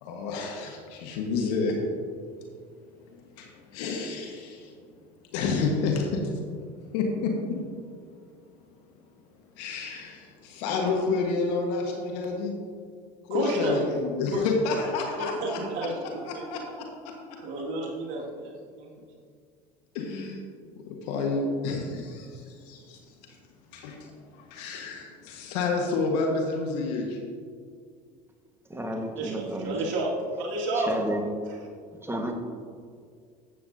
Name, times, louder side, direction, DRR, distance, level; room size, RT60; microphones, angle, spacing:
voice 1, 0.0-1.8 3.1-4.7 5.3-6.3 6.9-7.6 9.5-12.5 13.3-15.9 16.3-16.6 17.0-17.1 19.9-20.4 20.9-23.0 23.3-23.4 23.7-24.1 24.3-27.2, left 4 dB, 75° left, 1 dB, 1.5 m, -29 dB
voice 2, 13.3-13.8 14.3-14.5 15.2-16.4 17.4-18.5 18.8-18.9 29.2-30.9, right 1 dB, 65° right, -2 dB, 2.2 m, -30 dB
voice 3, 28.7-29.9 30.7-31.3 32.0-32.3, right 1 dB, 10° right, 3 dB, 1.4 m, -32 dB
12.5 x 8.6 x 2.7 m, 2.1 s
hypercardioid pair, 80°, 21 cm